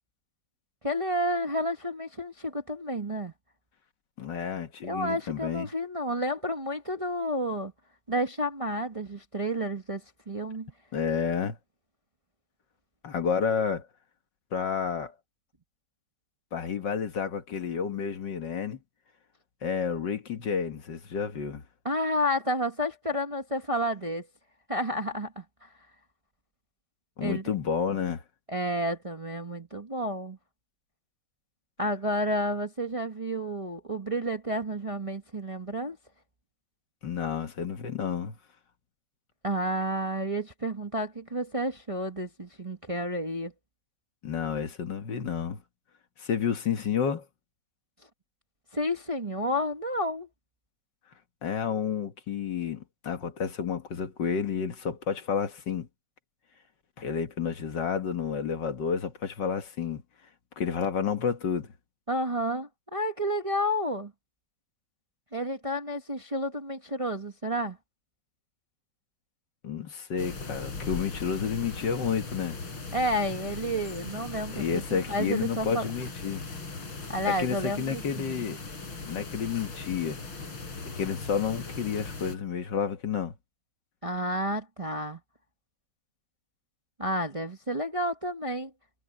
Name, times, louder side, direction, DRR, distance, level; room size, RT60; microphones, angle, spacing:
voice 1, 0.8-3.3 4.9-7.7 8.1-10.7 21.8-24.3 24.7-25.7 27.2-27.4 28.5-30.4 31.8-36.0 39.4-43.5 48.7-50.3 62.1-64.1 65.3-67.8 72.9-75.8 77.1-78.4 84.0-85.2 87.0-88.7, equal, 20° right, 1.2 m, -30 dB
voice 2, 4.2-5.7 10.9-11.6 13.0-13.9 14.5-15.2 16.5-18.8 19.6-21.6 27.2-28.2 37.0-38.4 44.2-45.6 46.2-47.3 51.4-55.9 57.0-60.0 60.6-61.7 69.6-72.6 74.5-76.4 77.3-78.6 79.1-80.2 81.0-83.3, left 7 dB, 60° left, 2.0 m, -30 dB
sound 1, 70.2-82.4, left 4 dB, 90° left, 4.8 m, -39 dB
omnidirectional pair, 2.2 m